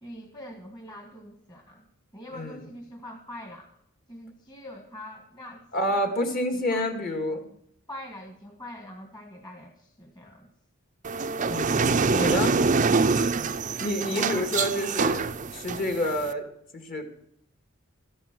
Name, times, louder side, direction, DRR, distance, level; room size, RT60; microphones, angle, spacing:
voice 1, 0.0-1.8 2.1-3.7 4.1-6.1 6.5-6.9 7.9-10.5 14.1-14.5, left 1 dB, 20° left, 2 dB, 1.6 m, -43 dB
voice 2, 2.3-2.7 5.7-7.4 11.5-12.5 13.8-16.4 16.7-17.0, left 1 dB, 40° left, 4 dB, 2.1 m, -28 dB
sound 1, 11.0-16.3, right 4 dB, 35° right, 0.5 m, -25 dB
13.5 x 11.0 x 6.1 m, 0.68 s
head